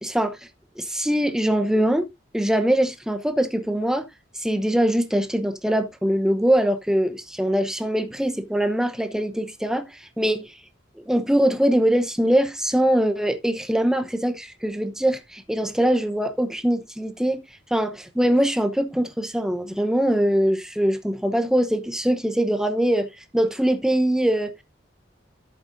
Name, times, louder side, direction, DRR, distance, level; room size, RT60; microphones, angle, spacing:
voice 1, 0.0-0.4 0.8-2.1 2.3-4.1 4.4-9.8 10.2-10.5 11.0-17.4 17.7-24.6, right 1 dB, 5° right, 0.9 m, -22 dB
11.5 x 8.0 x 2.6 m
head